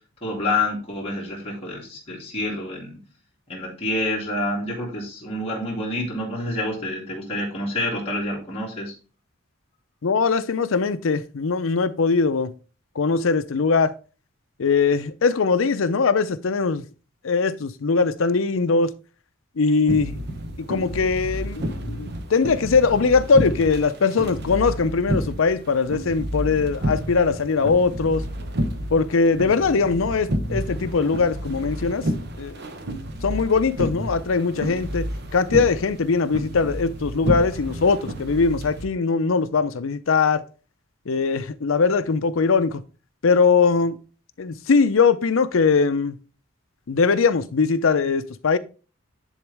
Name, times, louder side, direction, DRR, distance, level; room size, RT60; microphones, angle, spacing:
voice 1, 0.2-3.0 3.5-8.9, left 2 dB, 30° left, 2.5 m, -28 dB
voice 2, 10.0-12.5 13.0-13.9 14.6-16.8 17.2-18.9 19.6-20.2 20.6-28.2 28.9-32.0 32.4-32.6 33.2-35.0 35.3-40.4 41.1-42.8 43.2-44.0 44.4-46.2 46.9-48.6, left 4 dB, 80° left, 0.6 m, -21 dB
sound 1, 19.9-38.9, equal, 55° right, 0.9 m, -30 dB
10.0 x 4.0 x 3.4 m
head